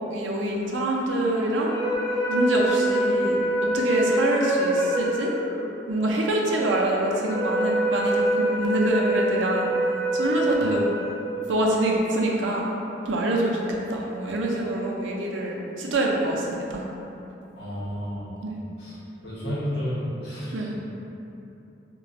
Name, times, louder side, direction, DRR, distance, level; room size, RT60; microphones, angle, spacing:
voice 1, 0.1-1.7 2.3-3.4 3.7-5.3 5.9-9.7 10.1-10.9 11.5-12.7 13.0-13.6 13.9-16.8 18.4-18.6 20.5-20.7, right 1 dB, 85° right, -1 dB, 0.5 m, -25 dB
sound 1, 1.4-11.8, right 1 dB, 15° left, 0.8 m, -26 dB
voice 2, 17.6-18.3 18.8-18.9 19.2-20.7, equal, 65° left, -8 dB, 0.8 m, -31 dB
2.4 x 2.2 x 3.9 m, 2.9 s
head